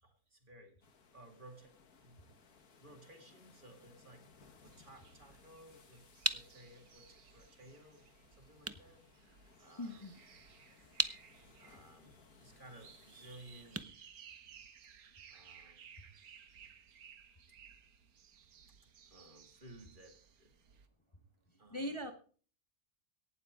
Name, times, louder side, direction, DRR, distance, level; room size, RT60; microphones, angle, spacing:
voice 1, 0.0-0.8 1.1-2.4 2.8-4.3 4.6-8.1 8.4-9.0 9.6-10.1 11.6-13.9 15.3-15.9 19.1-20.5 21.6-22.0, right 1 dB, 35° right, 4 dB, 2.5 m, -58 dB
sound 1, 0.8-13.8, left 5 dB, 85° left, 2.0 m, -64 dB
sound 2, 4.6-20.9, right 7 dB, 80° right, 1.6 m, -60 dB
sound 3, 6.2-15.0, right 2 dB, 15° right, 0.5 m, -42 dB
voice 2, 9.8-10.2 21.7-22.1, left 1 dB, 20° left, 5 dB, 1.3 m, -40 dB
18.0 x 12.0 x 3.7 m, 0.42 s
omnidirectional pair, 1.5 m